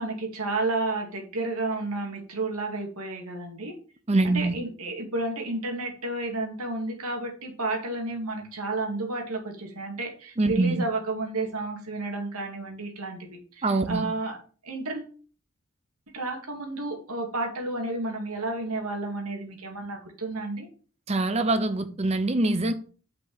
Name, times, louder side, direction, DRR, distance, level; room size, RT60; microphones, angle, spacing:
voice 1, 0.0-3.8 4.2-14.4 14.6-15.1 16.1-20.7, right 2 dB, 90° right, 2.2 m, -31 dB
voice 2, 4.1-4.6 10.4-10.8 13.6-14.1 21.1-22.7, right 2 dB, 30° right, 0.7 m, -24 dB
5.9 x 5.2 x 6.1 m
head